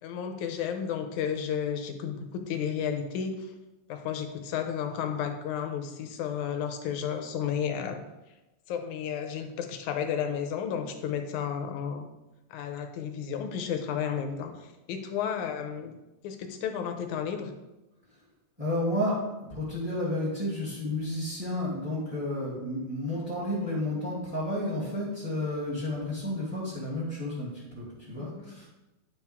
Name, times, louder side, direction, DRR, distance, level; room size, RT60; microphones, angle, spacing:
voice 1, 0.0-3.5 3.9-8.0 8.7-12.1 12.5-15.9 16.2-17.5 28.2-28.5, left 8 dB, 80° left, 6 dB, 2.2 m, -32 dB
voice 2, 18.6-28.7, left 1 dB, 5° right, -6 dB, 2.1 m, -31 dB
10.0 x 7.2 x 3.6 m, 1.0 s
omnidirectional pair, 3.5 m